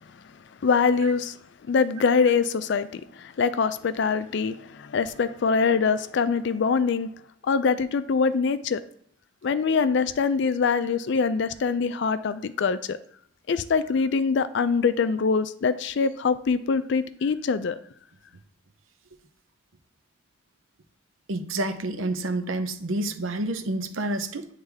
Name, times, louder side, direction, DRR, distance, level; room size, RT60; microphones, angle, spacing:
voice 1, 0.6-1.4 1.7-7.1 7.4-8.8 9.4-13.0 13.5-17.8, left 5 dB, 60° left, 13 dB, 0.4 m, -24 dB
voice 2, 21.3-24.5, right 2 dB, 75° right, 8 dB, 0.7 m, -29 dB
9.6 x 3.2 x 3.4 m, 0.67 s
head